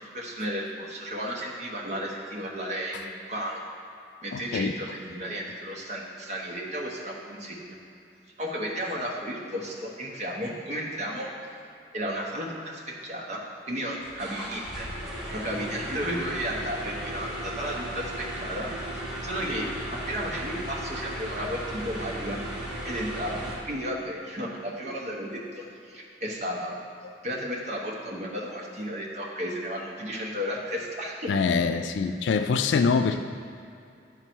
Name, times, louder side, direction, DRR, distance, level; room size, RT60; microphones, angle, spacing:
voice 1, 0.1-3.6 4.2-7.8 8.4-11.3 11.9-14.9 15.3-19.7 19.9-22.4 22.8-26.7 27.2-31.3, equal, 40° right, -2 dB, 1.1 m, -33 dB
voice 2, 4.3-4.7 31.3-33.2, left 5 dB, 80° left, 9 dB, 0.3 m, -24 dB
sound 1, 14.0-23.6, right 1 dB, 5° right, 1.8 m, -36 dB
10.0 x 3.9 x 4.5 m, 2.6 s
head